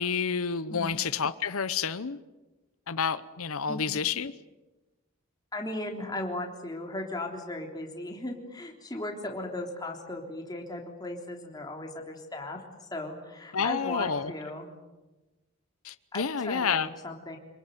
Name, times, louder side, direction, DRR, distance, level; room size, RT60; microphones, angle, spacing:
voice 1, 0.0-2.2 2.9-4.3 13.5-14.3 15.8-16.9, left 6 dB, 80° left, 14 dB, 0.9 m, -29 dB
voice 2, 5.5-14.7 16.1-17.4, left 1 dB, 20° left, 1 dB, 3.6 m, -37 dB
28.5 x 20.5 x 9.4 m, 1.1 s
head